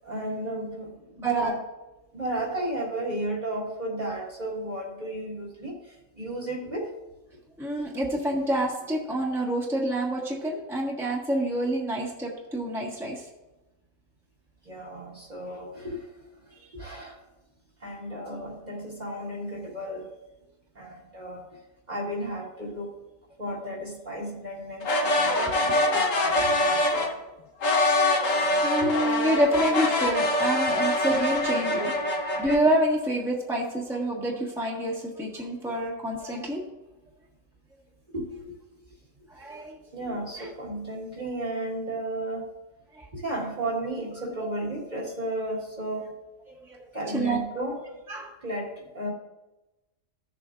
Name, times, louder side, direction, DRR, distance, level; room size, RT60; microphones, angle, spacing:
voice 1, 0.0-1.6 2.1-6.9 14.6-17.2 17.8-20.1 20.8-21.6 21.9-23.0 23.4-27.1 28.8-29.0 31.7-31.8 38.1-38.6 39.9-42.5 43.1-46.1 46.9-47.8 48.4-49.1, right 1 dB, 35° right, -3 dB, 1.7 m, -34 dB
voice 2, 1.2-1.5 7.6-13.2 27.9-28.1 28.6-31.9 32.4-36.6 39.3-39.8 40.4-40.5 43.0-43.1 44.4-44.5 46.5-46.9 47.1-47.4 48.1-48.3, right 1 dB, ahead, -3 dB, 1.4 m, -27 dB
sound 1, 24.8-27.1 27.6-32.6, left 1 dB, 80° left, 1.5 m, -24 dB
15.5 x 7.1 x 2.5 m, 1.0 s
omnidirectional pair, 1.3 m